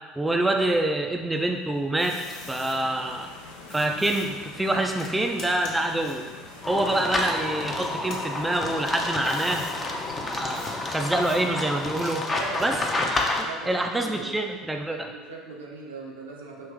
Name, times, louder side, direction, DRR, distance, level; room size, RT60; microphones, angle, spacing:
voice 1, 0.2-2.2 2.5-3.3 3.7-6.2 6.7-9.6 10.2-12.2 12.6-12.8 13.1-15.0, right 1 dB, 10° right, 3 dB, 0.4 m, -26 dB
sound 1, 1.4-2.8 3.7-7.6 8.0-9.8 10.5-10.8 11.2-12.5, left 2 dB, 55° left, 0.9 m, -44 dB
sound 2, 2.1-12.0, left 3 dB, 70° left, 0.6 m, -44 dB
sound 3, 6.6-13.4, left 2 dB, 25° left, 0.7 m, -29 dB
voice 2, 12.3-12.7 13.4-14.3 14.9-16.7, right 4 dB, 80° right, -3 dB, 0.8 m, -39 dB
5.4 x 2.8 x 3.6 m, 1.4 s
figure-of-eight pair, 65°, 0 cm